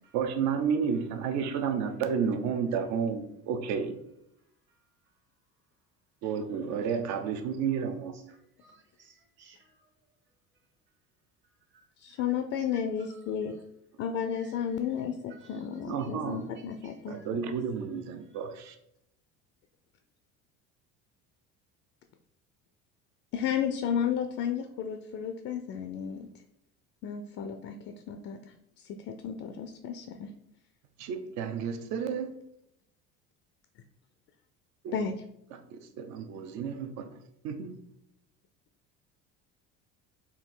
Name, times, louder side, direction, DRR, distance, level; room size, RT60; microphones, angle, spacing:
voice 1, 0.1-4.0 6.2-8.1 15.9-16.5 17.1-18.8 31.0-32.3 34.8-35.0 35.5-37.1 37.4-37.8, right 6 dB, 65° right, 7 dB, 0.7 m, -31 dB
voice 2, 8.1-9.8 11.7-12.3 12.7-13.6 14.3-17.3 18.2-18.4, right 5 dB, 40° right, 3 dB, 1.1 m, -61 dB
voice 3, 12.0-13.5 14.0-15.2 15.5-17.2 23.3-26.3 27.0-28.4 28.9-30.3 34.9-35.2, left 8 dB, 50° left, 7 dB, 0.4 m, -32 dB
4.3 x 2.7 x 3.7 m, 0.77 s
cardioid pair, 135°, 30 cm